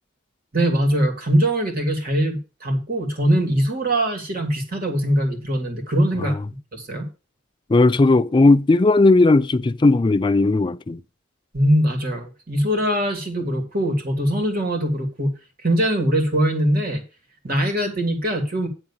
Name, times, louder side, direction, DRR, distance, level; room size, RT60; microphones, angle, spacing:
voice 1, 0.5-6.4 6.7-7.1 11.5-15.3 15.6-17.0 17.4-18.7, right 1 dB, 45° right, 2.6 m, -22 dB
voice 2, 7.7-11.0, left 2 dB, 25° left, 0.3 m, -16 dB
9.8 x 3.8 x 7.2 m
head